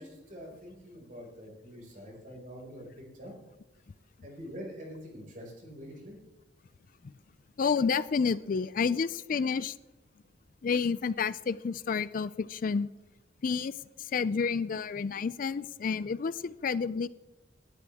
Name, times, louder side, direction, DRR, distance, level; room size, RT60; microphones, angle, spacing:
voice 1, 0.0-2.9 3.1-3.3 4.2-6.2, equal, 45° right, -1 dB, 5.3 m, -45 dB
voice 2, 7.6-9.7 10.6-12.9 13.4-13.7 14.0-17.1, left 5 dB, 45° left, 17 dB, 0.4 m, -30 dB
18.5 x 12.0 x 3.5 m, 1.1 s
head